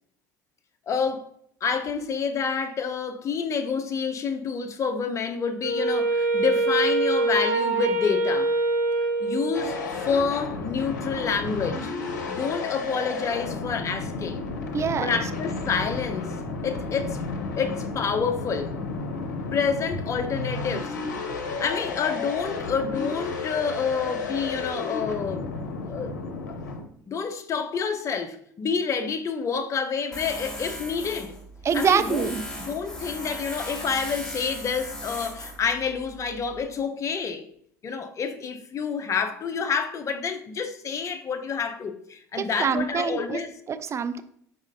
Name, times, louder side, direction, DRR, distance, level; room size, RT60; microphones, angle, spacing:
voice 1, 0.9-1.3 1.6-8.5 9.2-9.8 10.1-11.9 12.3-14.4 15.0-16.3 16.6-17.2 17.6-18.7 19.5-21.0 21.6-25.4 25.9-26.1 26.5-26.6 27.1-31.4 31.7-32.3 32.6-37.5 37.8-43.5, left 5 dB, 35° left, 0.5 m, -28 dB
Wind instrument woodwind instrument, 5.6-10.0, right 2 dB, 75° right, 1.9 m, -24 dB
sound 1, 9.5-26.8, left 4 dB, 80° left, 0.6 m, -32 dB
voice 2, 14.7-15.1 31.6-32.4 42.4-43.4 43.7-44.2, right 7 dB, 30° right, 0.3 m, -25 dB
Tools, 30.1-36.6, equal, 5° left, 1.1 m, -38 dB
5.0 x 4.1 x 2.5 m
hypercardioid pair, 65°, 10 cm